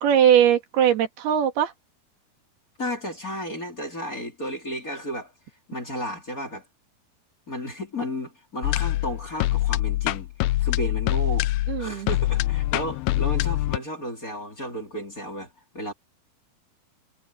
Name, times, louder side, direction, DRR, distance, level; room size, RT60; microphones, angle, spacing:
voice 1, 0.0-1.7 11.7-12.1, right 9 dB, 80° right, 3.9 m, -20 dB
voice 2, 2.8-5.3 5.7-6.6 7.5-10.3 10.6-11.5 11.8-15.9, equal, 20° left, 3.5 m, -33 dB
sound 1, 8.6-13.8, left 16 dB, 80° left, 2.2 m, -24 dB
omnidirectional pair, 4.6 m